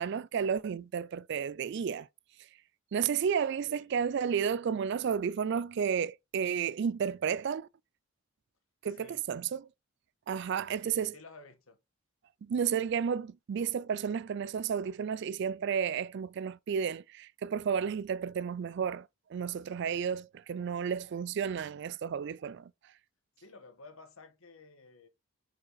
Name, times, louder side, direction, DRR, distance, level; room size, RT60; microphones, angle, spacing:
voice 1, 0.0-2.1 2.9-7.7 8.8-9.7 10.3-11.2 12.4-22.7, right 7 dB, 55° right, 0.3 m, -32 dB
voice 2, 8.9-9.2 10.8-11.8 23.4-25.1, left 3 dB, 75° left, 1.3 m, -53 dB
5.7 x 5.2 x 4.0 m
head